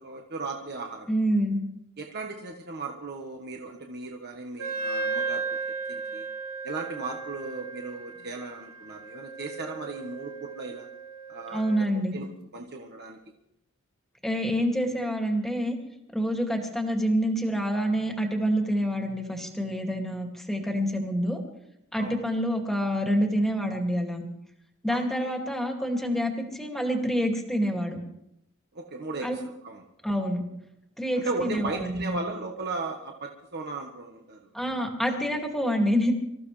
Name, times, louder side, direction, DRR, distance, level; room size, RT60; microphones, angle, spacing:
voice 1, 0.0-1.1 2.0-5.6 5.9-6.2 6.6-10.9 11.3-11.6 12.1-12.3 12.5-13.2 22.0-22.2 24.9-25.3 28.7-29.8 31.1-34.5, right 3 dB, 50° right, 2 dB, 1.3 m, -36 dB
voice 2, 1.1-1.6 11.5-12.2 14.2-15.8 16.1-21.4 21.9-24.2 24.8-28.0 29.2-29.3 30.0-30.4 31.0-32.2 34.5-36.1, equal, ahead, 2 dB, 2.2 m, -27 dB
Wind instrument woodwind instrument, 4.6-11.9, right 4 dB, 90° right, 2.7 m, -35 dB
25.5 x 14.5 x 3.3 m, 0.81 s
head